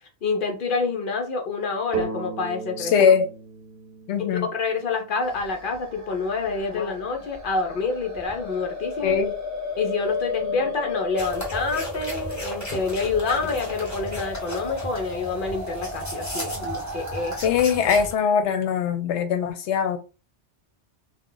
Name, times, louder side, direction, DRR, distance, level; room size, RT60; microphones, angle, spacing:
voice 1, 0.2-2.9 4.2-9.1 9.8-17.6, left 4 dB, 55° left, 0.8 m, -27 dB
sound 1, 1.9-5.6, right 5 dB, 60° right, 0.8 m, -35 dB
voice 2, 2.8-3.3 4.1-4.5 6.7-6.9 9.0-9.4 10.4-10.7 17.4-20.0, left 7 dB, 85° left, 0.9 m, -22 dB
sound 2, 5.2-17.4, left 3 dB, 25° right, 0.4 m, -34 dB
sound 3, 11.2-18.1, equal, 15° left, 1.0 m, -36 dB
2.3 x 2.2 x 3.7 m
omnidirectional pair, 1.1 m